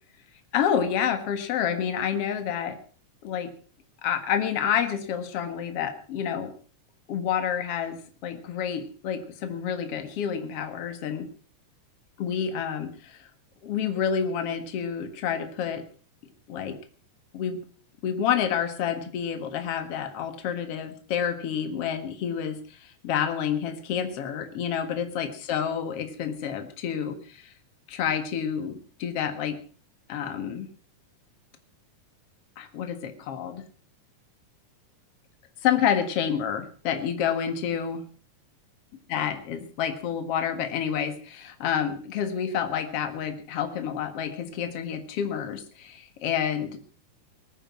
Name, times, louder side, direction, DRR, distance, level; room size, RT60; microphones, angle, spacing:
voice 1, 0.5-2.8 3.2-3.5 4.0-6.5 7.1-11.3 12.2-13.3 13.6-15.8 16.5-16.8 17.3-17.6 18.0-27.5 27.9-29.6 30.1-30.7 32.6-33.6 35.6-38.0 39.1-46.8, left 8 dB, 55° left, 8 dB, 2.5 m, -29 dB
20.5 x 9.3 x 6.0 m, 0.41 s
omnidirectional pair, 3.6 m